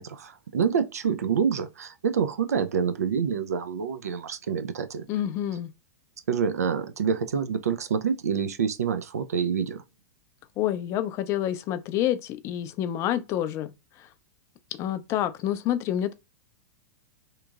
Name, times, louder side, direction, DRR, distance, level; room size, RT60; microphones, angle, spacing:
voice 1, 0.0-5.0 6.3-9.8, right 7 dB, 75° right, 0.3 m, -27 dB
voice 2, 5.1-5.7 10.6-13.7 14.0-14.1 14.8-16.1, left 11 dB, 35° left, 0.4 m, -28 dB
2.9 x 2.5 x 2.3 m
hypercardioid pair, 100°, 8 cm